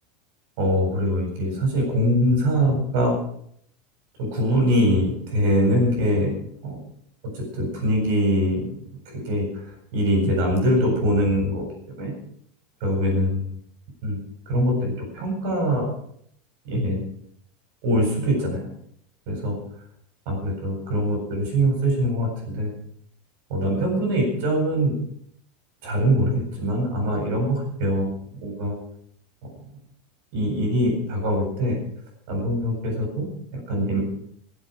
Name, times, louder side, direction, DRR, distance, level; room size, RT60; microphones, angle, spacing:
voice 1, 0.6-3.1 4.2-6.3 6.6-6.8 7.3-8.7 9.1-9.6 9.9-11.7 12.0-12.1 12.8-13.5 14.0-14.2 14.5-15.9 16.6-17.0 17.8-18.6 19.3-19.6 20.3-22.7 23.5-25.0 25.8-28.8 30.3-31.8 32.3-34.0, equal, 55° right, 1 dB, 7.8 m, -23 dB
21.5 x 8.3 x 6.5 m, 0.68 s
supercardioid pair, 175°, 0 cm